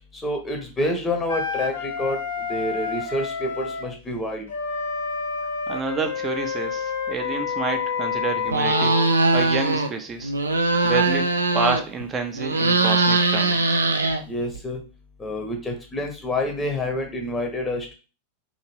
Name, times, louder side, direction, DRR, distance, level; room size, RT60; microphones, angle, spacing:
voice 1, 0.1-4.5 14.2-14.8 15.2-17.9, left 1 dB, 15° left, 3 dB, 0.8 m, -28 dB
Wind instrument woodwind instrument, 1.3-3.9 4.5-9.1, left 5 dB, 60° left, 0.6 m, -29 dB
voice 2, 5.7-9.0 9.3-10.3 10.8-13.8, right 4 dB, 25° right, 6 dB, 0.5 m, -28 dB
sound 1, 8.5-9.9 10.2-12.0 12.3-14.6, right 3 dB, 80° right, 0.4 m, -21 dB
2.7 x 2.6 x 3.0 m, 0.34 s
figure-of-eight pair, 90°, 0 cm